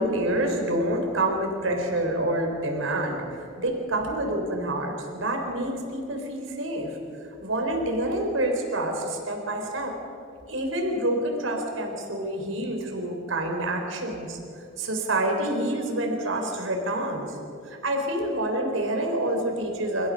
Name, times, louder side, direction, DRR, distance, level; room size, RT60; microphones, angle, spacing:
voice 1, 0.0-7.0 7.4-9.9 10.5-14.4 14.8-17.4 17.7-20.1, right 1 dB, 85° right, 2 dB, 4.1 m, -27 dB
30.0 x 15.0 x 6.5 m, 2.6 s
head